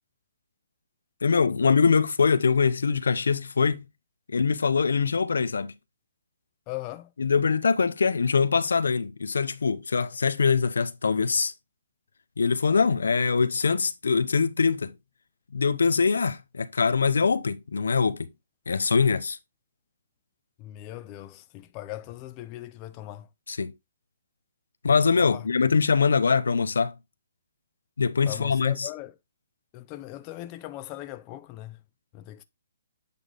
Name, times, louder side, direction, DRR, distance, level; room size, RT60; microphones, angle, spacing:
voice 1, 1.2-3.8 4.3-5.7 7.2-11.5 12.4-14.9 15.5-18.3 18.7-19.4 23.5-23.7 24.8-26.9 28.0-28.9, left 5 dB, 80° left, 0.7 m, -23 dB
voice 2, 6.7-7.1 20.6-23.3 25.2-25.5 28.3-29.1 29.7-31.8 32.1-32.4, left 15 dB, 25° left, 0.5 m, -39 dB
8.4 x 3.3 x 3.8 m
hypercardioid pair, 150°, 0 cm